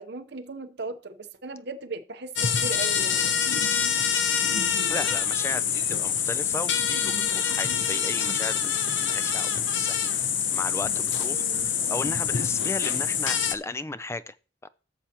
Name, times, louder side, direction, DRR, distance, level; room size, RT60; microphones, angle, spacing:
voice 1, 0.0-3.2 11.3-11.7, right 3 dB, 60° right, 0.9 m, -37 dB
sound 1, 2.4-13.6, left 7 dB, 75° left, 0.7 m, -26 dB
voice 2, 4.9-14.4 14.6-14.7, left 2 dB, 15° left, 0.4 m, -35 dB
12.5 x 7.2 x 2.9 m
head